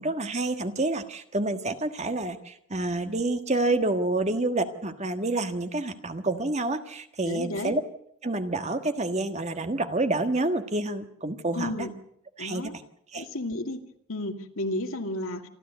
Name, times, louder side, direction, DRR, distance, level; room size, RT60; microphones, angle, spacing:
voice 1, 0.0-7.8 8.2-11.7 12.4-12.7 13.1-13.2, right 2 dB, 30° right, 8 dB, 1.5 m, -28 dB
voice 2, 7.3-7.7 11.5-11.9 12.4-12.7 13.1-13.8 14.1-15.5, left 1 dB, 65° left, 5 dB, 2.3 m, -32 dB
27.0 x 13.0 x 8.1 m, 0.71 s
head